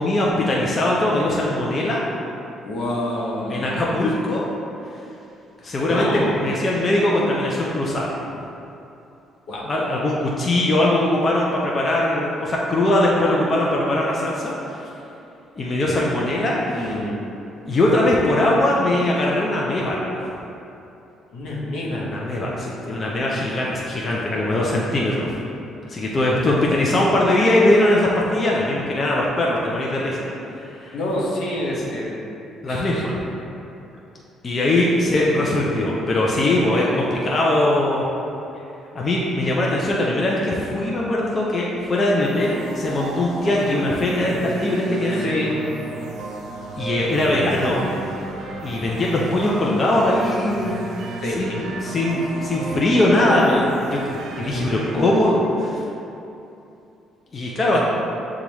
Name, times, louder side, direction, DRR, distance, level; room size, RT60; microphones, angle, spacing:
voice 1, 0.0-2.0 3.5-4.5 5.6-6.0 6.4-8.1 9.6-14.8 15.6-16.9 17.6-20.3 22.1-25.3 25.9-30.2 30.7-30.9 32.6-33.2 34.4-38.0 38.9-45.2 46.8-47.8 48.6-50.8 51.4-55.8 57.3-57.8, left 1 dB, 40° left, -4 dB, 0.6 m, -21 dB
voice 2, 2.6-3.7 5.8-6.5 9.5-9.7 16.7-17.2 21.3-22.1 30.9-32.3 32.6-33.1 35.0-35.5 45.2-45.8 51.2-51.6 54.4-54.8 57.7-57.8, left 1 dB, 70° left, -4 dB, 0.9 m, -27 dB
sound 1, 42.2-55.7, right 2 dB, 75° right, 0.6 m, -33 dB
6.7 x 2.4 x 3.1 m, 2.8 s
supercardioid pair, 60°, 0 cm